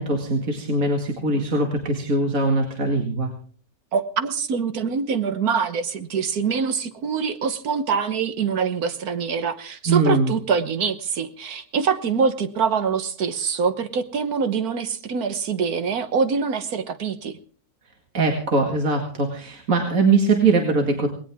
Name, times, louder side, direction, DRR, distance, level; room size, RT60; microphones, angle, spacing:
voice 1, 0.0-3.3 9.9-10.3 18.1-21.1, right 3 dB, 60° right, 2 dB, 2.4 m, -21 dB
voice 2, 3.9-17.4, right 6 dB, 80° right, 10 dB, 1.7 m, -24 dB
19.5 x 18.0 x 3.6 m, 0.43 s
omnidirectional pair, 1.6 m